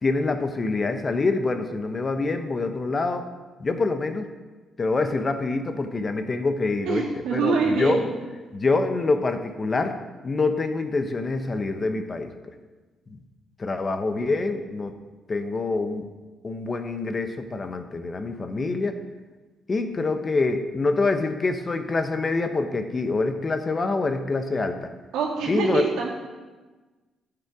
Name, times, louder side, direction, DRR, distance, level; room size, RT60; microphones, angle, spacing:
voice 1, 0.0-3.2 3.6-4.2 4.8-7.0 7.3-8.0 8.5-10.0 10.2-12.3 13.1-13.2 13.6-14.9 15.3-16.1 16.4-19.0 19.7-24.8 25.5-26.1, left 3 dB, 35° left, 8 dB, 0.9 m, -25 dB
voice 2, 6.8-8.0 25.1-26.1, right 4 dB, 85° right, -2 dB, 2.1 m, -24 dB
10.5 x 6.9 x 4.8 m, 1.3 s
cardioid pair, 90°, 0 cm